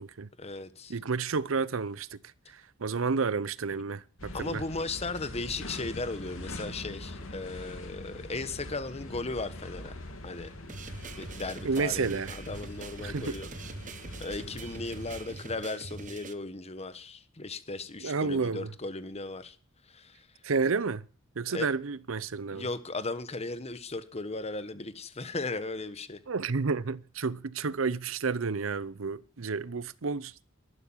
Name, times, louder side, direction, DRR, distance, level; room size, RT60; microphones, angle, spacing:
voice 1, 0.4-0.9 4.3-9.9 10.2-10.5 11.2-13.5 14.2-19.6 19.9-20.3 21.5-21.7 22.5-26.2, left 3 dB, 30° left, 1.3 m, -36 dB
voice 2, 0.9-2.2 2.5-4.6 11.6-12.3 13.0-13.4 18.0-18.7 20.4-21.1 21.4-22.6 26.3-30.3, right 4 dB, 75° right, 0.7 m, -31 dB
sound 1, 4.2-15.3, left 1 dB, 90° left, 3.0 m, -43 dB
sound 2, 10.7-16.3, right 3 dB, 40° right, 1.0 m, -44 dB
13.0 x 12.0 x 7.3 m
head